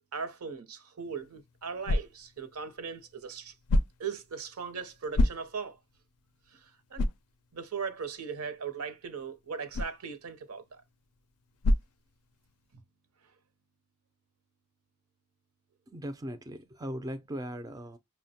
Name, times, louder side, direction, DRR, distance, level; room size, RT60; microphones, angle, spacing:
voice 1, 0.0-3.5 4.0-5.8 6.5-7.1 7.5-10.8 12.7-12.8, right 6 dB, 75° right, 0.7 m, -39 dB
sound 1, 1.0-12.7, left 1 dB, 80° left, 0.4 m, -34 dB
voice 2, 15.9-18.0, equal, 15° right, 0.3 m, -39 dB
5.4 x 2.1 x 2.7 m
head